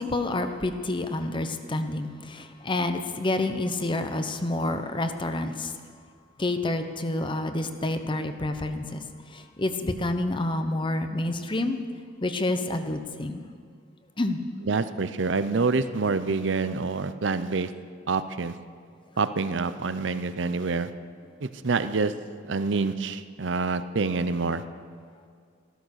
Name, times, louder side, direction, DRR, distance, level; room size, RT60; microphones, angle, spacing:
voice 1, 0.0-5.7 6.4-9.0 9.3-11.8 12.2-13.5 14.2-14.4, left 2 dB, 25° left, 8 dB, 0.9 m, -28 dB
voice 2, 14.7-17.7 18.1-18.5 19.2-20.9 21.4-22.1 22.4-24.6, right 4 dB, 70° right, 12 dB, 0.7 m, -27 dB
14.0 x 13.0 x 6.5 m, 2.2 s
head